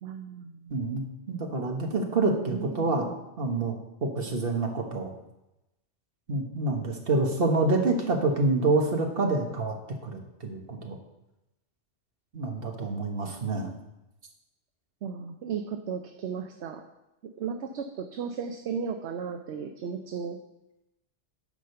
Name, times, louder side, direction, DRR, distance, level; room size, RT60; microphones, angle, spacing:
voice 1, 0.0-0.8 2.5-3.1 15.0-16.8 17.4-20.4, right 6 dB, 70° right, 6 dB, 0.9 m, -35 dB
voice 2, 0.7-3.1 3.4-5.1 6.3-9.8 10.0-11.0 12.3-13.7, right 3 dB, 55° right, 2 dB, 1.6 m, -27 dB
10.5 x 5.0 x 6.8 m, 0.93 s
omnidirectional pair, 1.2 m